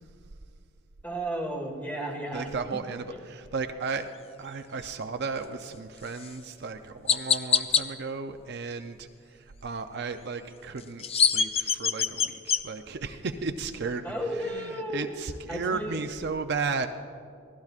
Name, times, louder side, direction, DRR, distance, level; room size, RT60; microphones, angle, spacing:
voice 1, 1.0-2.5 14.0-15.1 15.5-16.0, right 1 dB, 10° left, 0 dB, 1.6 m, -33 dB
voice 2, 2.3-4.1 4.4-16.9, right 4 dB, 55° right, 7 dB, 0.5 m, -34 dB
Chirp tweet, 6.2-6.3 7.1-7.8 10.8-12.6, left 7 dB, 30° left, 0.4 m, -24 dB
24.0 x 16.0 x 2.4 m, 2.3 s
head